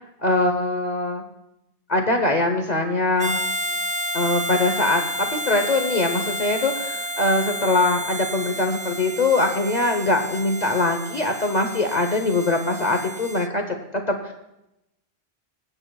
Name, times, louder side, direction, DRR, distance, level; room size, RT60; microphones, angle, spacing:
voice 1, 0.2-1.2 1.9-3.4 4.1-13.6 13.9-14.3, left 2 dB, 45° left, 4 dB, 1.0 m, -22 dB
Harmonica, 3.2-13.5, equal, 10° right, 0.4 m, -31 dB
20.5 x 8.8 x 2.3 m, 0.88 s
omnidirectional pair, 1.0 m